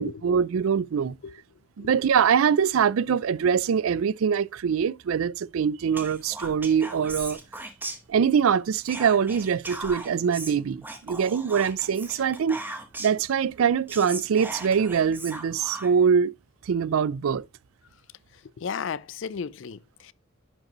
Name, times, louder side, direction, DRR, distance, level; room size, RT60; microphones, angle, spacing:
voice 1, 0.0-1.2 1.8-7.4 8.1-12.6 13.0-16.3 16.7-17.4, right 7 dB, 80° right, 0.4 m, -23 dB
Whispering, 5.9-8.5 8.8-13.3 13.6-13.7 13.9-16.1, right 2 dB, 10° right, 1.1 m, -38 dB
voice 2, 18.6-20.1, left 6 dB, 60° left, 0.4 m, -34 dB
11.0 x 5.2 x 3.0 m
head